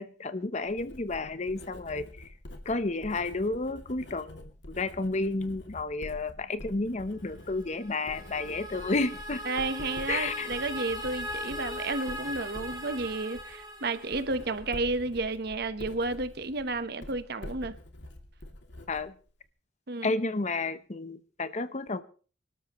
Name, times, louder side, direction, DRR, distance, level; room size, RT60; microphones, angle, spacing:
voice 1, 0.0-2.3 2.6-9.4 10.1-10.5 18.9-19.1 20.0-22.0, left 3 dB, 40° left, 0.9 m, -31 dB
Writing, 0.6-19.5, left 1 dB, 80° left, 2.5 m, -47 dB
sound 1, 7.5-14.6, equal, 25° right, 5.5 m, -39 dB
voice 2, 9.5-17.7 19.9-20.1, right 3 dB, 60° right, 1.1 m, -32 dB
25.0 x 13.0 x 3.1 m
head